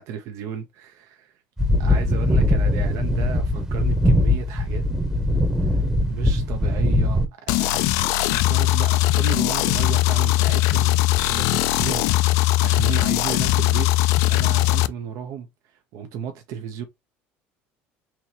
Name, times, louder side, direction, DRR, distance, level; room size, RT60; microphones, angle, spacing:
voice 1, 0.0-1.4 1.8-4.8 5.6-7.3 7.5-16.8, right 8 dB, 65° right, 0.7 m, -34 dB
sound 1, 1.6-7.3, left 1 dB, 10° right, 0.9 m, -21 dB
sound 2, 7.5-14.9, left 17 dB, 70° left, 0.3 m, -20 dB
4.5 x 2.9 x 2.8 m
supercardioid pair, 85°, 6 cm